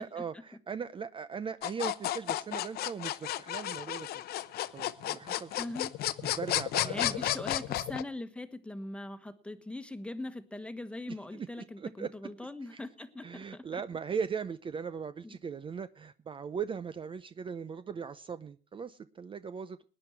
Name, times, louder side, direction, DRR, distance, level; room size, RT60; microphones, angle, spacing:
voice 1, 0.0-4.2 4.7-5.6 6.2-7.2 11.3-11.5 11.8-12.1 12.7-12.8 13.2-19.8, right 6 dB, 30° right, 13 dB, 0.6 m, -39 dB
sound 1, 1.6-8.0, left 13 dB, 70° left, 0.8 m, -32 dB
voice 2, 5.6-5.9 6.8-13.8 15.2-15.4, left 2 dB, 5° left, 10 dB, 1.3 m, -41 dB
19.5 x 9.9 x 4.6 m, 0.40 s
cardioid pair, 110°, 17 cm